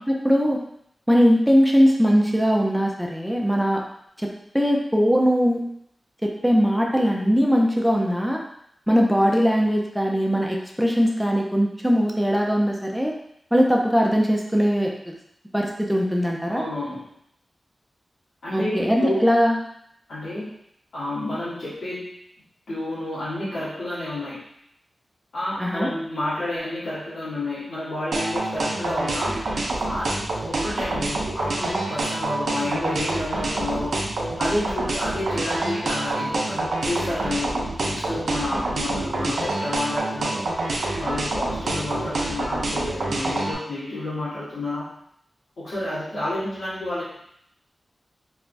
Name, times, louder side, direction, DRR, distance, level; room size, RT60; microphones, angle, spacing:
voice 1, 0.1-0.6 1.1-3.8 4.2-4.3 4.5-5.7 6.2-8.4 8.9-13.1 13.5-15.1 15.5-16.6 18.5-19.6 25.6-25.9, equal, 5° right, -1 dB, 0.5 m, -20 dB
voice 2, 16.5-17.2 18.4-19.3 20.1-20.5 20.9-22.1 22.7-24.4 25.3-29.4 29.8-30.1 30.5-33.9 34.4-40.4 40.9-44.9 45.6-47.2, left 1 dB, 85° left, -11 dB, 1.3 m, -30 dB
sound 1, 28.1-43.5, right 2 dB, 80° right, 0.4 m, -26 dB
3.2 x 2.2 x 2.5 m, 0.72 s
wide cardioid pair, 90°, 0 cm